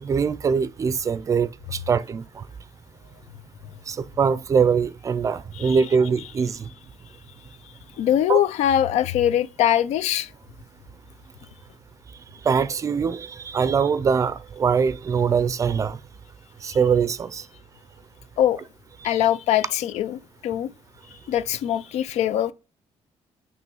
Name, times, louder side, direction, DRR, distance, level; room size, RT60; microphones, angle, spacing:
voice 1, 0.0-2.4 3.9-6.7 8.3-8.4 12.4-16.0 16.6-17.4, right 6 dB, 30° right, 0.4 m, -23 dB
voice 2, 8.0-10.3 18.4-18.6 19.0-20.7 21.3-22.5, left 11 dB, 75° left, 0.6 m, -22 dB
9.2 x 3.1 x 6.0 m
cardioid pair, 180°, 12 cm